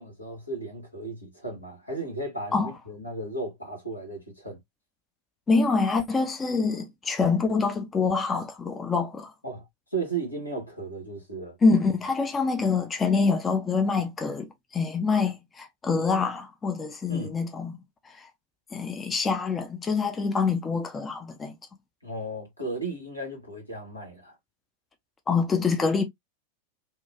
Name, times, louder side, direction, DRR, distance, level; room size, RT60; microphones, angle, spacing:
voice 1, 0.0-4.6 9.4-9.6 9.9-11.6 17.1-17.4 22.0-24.3, right 3 dB, 85° left, 1.3 m, -35 dB
voice 2, 5.5-9.3 11.6-17.8 18.0-18.3 18.7-21.5 25.3-26.0, left 4 dB, 20° left, 0.4 m, -25 dB
2.9 x 2.2 x 2.2 m
figure-of-eight pair, 90°, 0 cm